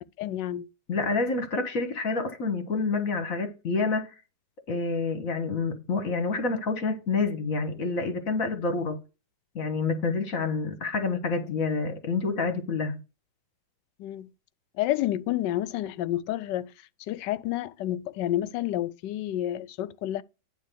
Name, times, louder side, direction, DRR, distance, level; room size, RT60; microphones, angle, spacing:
voice 1, 0.2-0.7 14.0-14.3 14.7-16.7 17.1-20.2, left 13 dB, 85° left, 1.2 m, -29 dB
voice 2, 0.9-4.1 4.7-9.0 9.6-13.0, left 4 dB, 55° left, 1.6 m, -28 dB
9.5 x 3.5 x 6.7 m
omnidirectional pair, 1.9 m